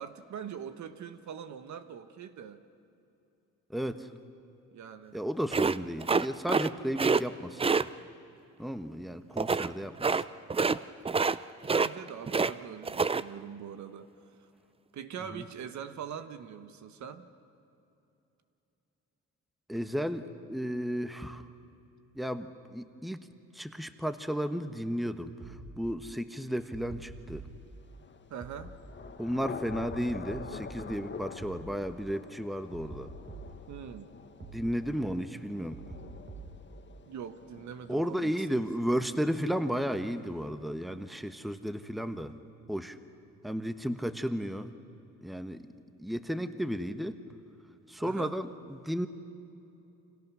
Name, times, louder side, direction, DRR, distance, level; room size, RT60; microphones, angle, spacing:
voice 1, 0.0-2.6 4.7-5.2 11.7-14.1 14.9-17.3 28.3-28.8 33.7-34.1 37.1-38.6 48.0-48.4, right 8 dB, 70° right, 9 dB, 1.4 m, -42 dB
voice 2, 3.7-4.1 5.1-7.9 8.6-10.2 15.3-15.4 19.7-21.4 22.1-23.3 23.5-27.5 29.2-33.1 34.5-35.8 37.9-42.3 42.7-43.0 43.4-44.7 45.2-45.6 46.0-47.2 47.9-49.1, equal, ahead, 9 dB, 1.2 m, -33 dB
sound 1, 5.5-6.7 7.0-7.2 7.6-7.8 9.4-9.7 10.0-10.2 10.5-10.8 11.1-11.4 11.6-12.5 12.8-13.2, right 4 dB, 20° right, 0.5 m, -26 dB
sound 2, 25.4-25.7 26.7-27.6 28.4-28.7 29.7-30.6 31.4-31.7 32.7-33.6 34.4-34.7 35.7-36.6, right 3 dB, 35° right, 3.0 m, -45 dB
Thunder / Rain, 27.8-39.4, left 5 dB, 40° left, 1.7 m, -47 dB
30.0 x 26.0 x 6.3 m, 2.8 s
cardioid pair, 90°, 30 cm